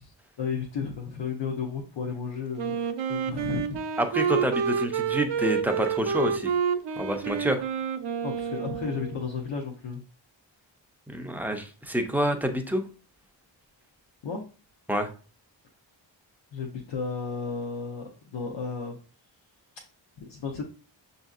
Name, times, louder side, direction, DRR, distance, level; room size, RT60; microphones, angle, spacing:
voice 1, 0.4-4.0 8.2-10.0 14.2-14.4 16.5-19.0 20.2-20.6, left 5 dB, 65° left, 0 dB, 0.7 m, -33 dB
Wind instrument woodwind instrument, 2.6-9.2, right 6 dB, 65° right, 0.5 m, -29 dB
voice 2, 4.0-6.5 7.0-7.6 11.1-12.8 14.9-15.1, right 1 dB, 5° right, 4 dB, 0.4 m, -27 dB
6.5 x 2.7 x 2.4 m, 0.37 s
wide cardioid pair, 150°, 46 cm